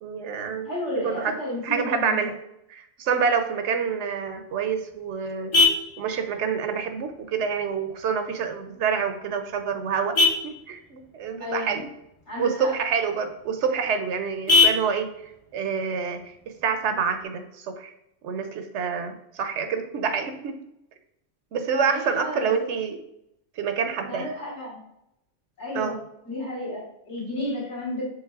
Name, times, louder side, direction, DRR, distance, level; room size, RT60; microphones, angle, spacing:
voice 1, 0.0-1.4 1.6-2.3 2.7-5.5 6.0-10.2 10.4-11.9 12.4-17.9 18.2-20.6 21.5-23.0 23.6-24.3 25.7-26.0, right 6 dB, 75° right, 8 dB, 0.9 m, -27 dB
voice 2, 0.7-2.3 11.4-11.8 12.3-12.7 21.9-22.7 24.0-24.8 25.6-26.0 26.3-28.1, left 1 dB, 70° left, -6 dB, 2.1 m, -32 dB
Vehicle horn car horn honking, 4.3-17.3, left 3 dB, 35° left, 0.5 m, -29 dB
6.3 x 3.3 x 2.4 m, 0.80 s
omnidirectional pair, 1.2 m